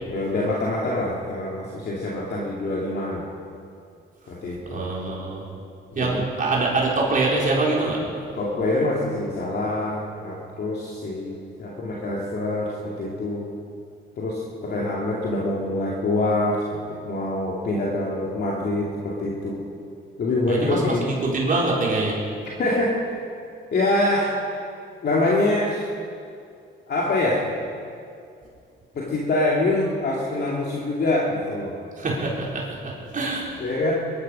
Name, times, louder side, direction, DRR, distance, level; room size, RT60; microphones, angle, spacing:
voice 1, 0.1-3.2 4.3-4.9 5.9-6.3 8.4-13.5 14.2-19.6 20.2-21.1 22.6-23.0 23.7-24.3 25.0-25.9 26.9-27.4 28.9-31.8 33.6-33.9, left 2 dB, 55° left, -3 dB, 2.6 m, -25 dB
voice 2, 4.7-5.5 5.9-8.0 20.5-22.2 32.0-33.5, right 2 dB, 40° right, -4 dB, 4.2 m, -24 dB
22.0 x 12.0 x 5.6 m, 2.4 s
cardioid pair, 90°, 20 cm